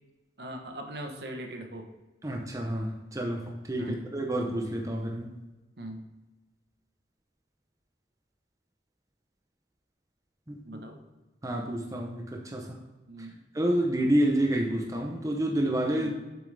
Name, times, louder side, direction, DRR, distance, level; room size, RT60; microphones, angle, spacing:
voice 1, 0.4-1.9 3.8-4.0 5.8-6.0 10.6-11.0 13.1-13.4 15.9-16.1, right 1 dB, 60° right, 4 dB, 1.0 m, -40 dB
voice 2, 2.2-5.3 10.5-10.8 11.4-12.8 13.2-13.3 13.5-16.1, right 1 dB, 20° right, 1 dB, 0.7 m, -29 dB
7.8 x 6.8 x 3.3 m, 1.1 s
head